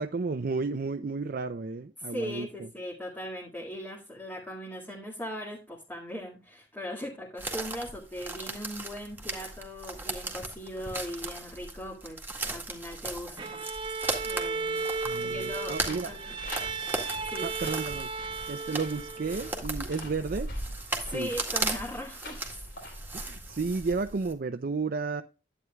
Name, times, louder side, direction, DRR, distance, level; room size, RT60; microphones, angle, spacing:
voice 1, 0.0-2.5 15.0-16.1 17.4-18.1 18.5-20.5 21.0-21.3 23.1-25.2, right 4 dB, 55° right, 0.5 m, -32 dB
voice 2, 2.0-13.6 14.2-14.9 15.2-16.3 17.3-17.5 21.0-22.6, equal, 10° left, 2.0 m, -39 dB
sound 1, 7.4-24.3, right 2 dB, 10° right, 1.9 m, -37 dB
Bowed string instrument, 13.4-19.7, right 4 dB, 30° right, 1.0 m, -35 dB
sound 2, 15.5-23.8, left 2 dB, 70° left, 4.1 m, -48 dB
11.0 x 9.0 x 2.3 m
head